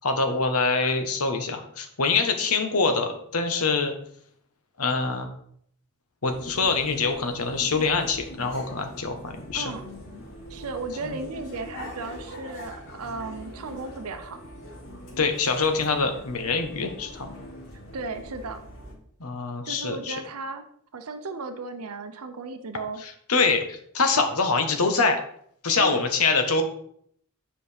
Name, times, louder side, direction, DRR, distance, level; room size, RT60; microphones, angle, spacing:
voice 1, 0.0-3.9 4.8-5.3 6.2-9.7 11.0-11.1 15.2-17.3 19.2-20.2 23.0-25.2 25.6-26.6, left 4 dB, 80° left, 5 dB, 1.2 m, -25 dB
sound 1, 6.2-18.9, equal, 65° left, 2.7 m, -42 dB
voice 2, 10.5-14.4 17.9-18.6 19.7-20.6 20.9-23.0 25.8-26.1, right 3 dB, 85° right, 8 dB, 0.7 m, -35 dB
9.4 x 5.1 x 3.4 m, 0.66 s
head